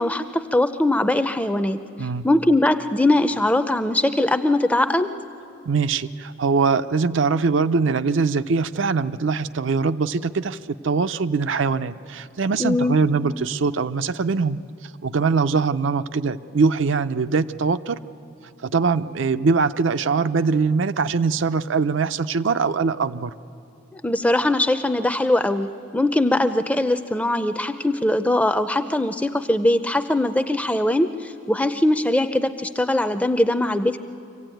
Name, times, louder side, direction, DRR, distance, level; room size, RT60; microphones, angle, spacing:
voice 1, 0.0-5.1 12.6-13.0 23.9-34.0, left 1 dB, 5° left, 10 dB, 0.5 m, -21 dB
voice 2, 5.7-10.6 10.8-14.6 15.0-18.0 18.6-23.3, right 4 dB, 70° right, 11 dB, 0.5 m, -22 dB
25.0 x 15.5 x 9.1 m, 2.7 s
head